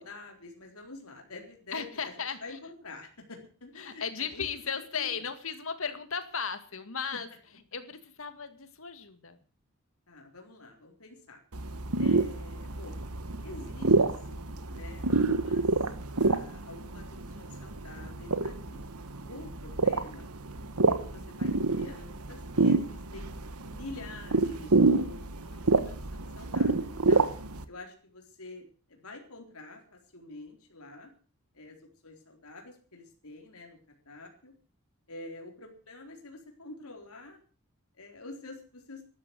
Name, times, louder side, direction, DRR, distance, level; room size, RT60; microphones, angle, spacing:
voice 1, 0.0-5.1 7.1-7.2 10.1-11.4 12.0-13.0 13.4-15.7 16.1-20.3 20.9-23.3 23.6-27.3 27.7-31.1 31.5-31.8 32.0-34.5 35.1-37.4 38.0-39.0, left 2 dB, 80° left, 2 dB, 4.1 m, -47 dB
voice 2, 1.7-2.4 3.8-7.3 7.7-9.4, left 6 dB, 65° left, 10 dB, 2.2 m, -36 dB
sound 1, 11.5-27.6, right 3 dB, 85° right, 1.4 m, -28 dB
13.5 x 12.0 x 8.1 m, 0.41 s
head